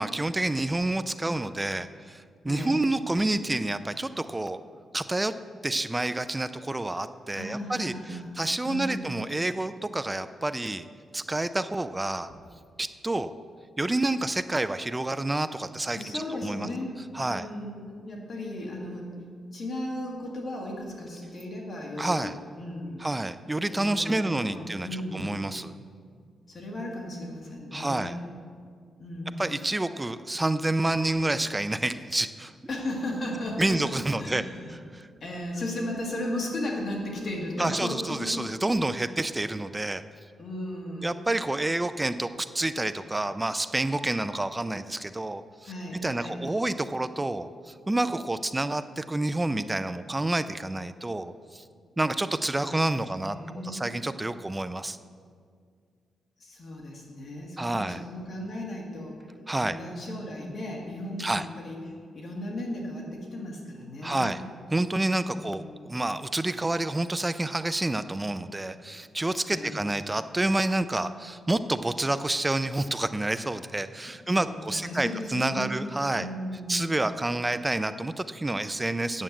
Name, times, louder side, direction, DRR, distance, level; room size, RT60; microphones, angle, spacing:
voice 1, 0.0-4.6 4.9-5.3 5.6-10.9 11.1-12.3 12.8-13.3 13.8-16.7 17.1-17.5 22.0-22.3 23.0-24.9 25.1-25.7 27.7-28.2 29.4-32.5 33.6-34.4 34.9-35.1 37.6-40.0 41.0-45.7 46.0-51.6 52.0-53.4 53.6-55.0 57.6-58.0 59.5-59.8 61.2-61.5 64.0-64.4 64.7-76.3 76.7-79.2, right 2 dB, 15° right, 12 dB, 0.3 m, -28 dB
voice 2, 2.4-2.8 7.3-8.3 8.6-9.0 15.9-17.0 17.3-19.1 19.5-23.1 23.7-25.3 26.5-28.1 29.0-29.5 32.7-33.8 34.2-34.8 35.2-39.1 40.4-41.1 45.6-46.4 52.5-53.9 56.4-59.2 59.6-64.4 65.3-66.0 69.5-69.8 74.0-75.9 76.1-77.0, left 1 dB, 40° left, -1 dB, 2.0 m, -36 dB
9.1 x 7.5 x 7.3 m, 2.1 s
wide cardioid pair, 140°, 0 cm